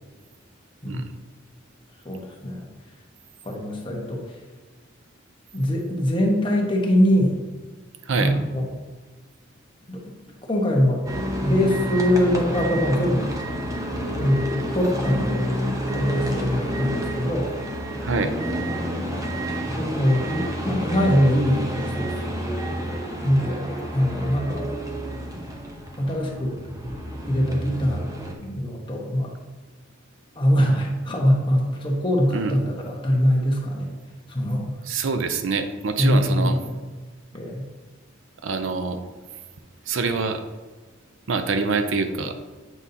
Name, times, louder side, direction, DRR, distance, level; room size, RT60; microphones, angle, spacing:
voice 1, 0.8-1.1 2.0-2.6 3.4-4.2 5.5-7.4 8.2-8.6 9.9-10.0 10.5-11.0 11.4-13.3 14.2-14.4 14.7-15.4 15.9-17.5 19.7-22.3 23.2-23.6 23.9-24.7 26.0-26.6 27.3-28.0 28.4-29.3 30.4-33.9 34.3-34.7 36.0-36.6 37.3-37.7, equal, 25° left, -1 dB, 1.1 m, -22 dB
sound 1, 11.0-28.3, equal, 15° right, 0.8 m, -29 dB
voice 2, 18.0-18.3 32.3-32.5 34.8-36.6 38.4-39.0 39.9-40.4 41.3-42.4, right 4 dB, 70° right, 8 dB, 0.5 m, -25 dB
8.4 x 5.3 x 2.8 m, 1.3 s
head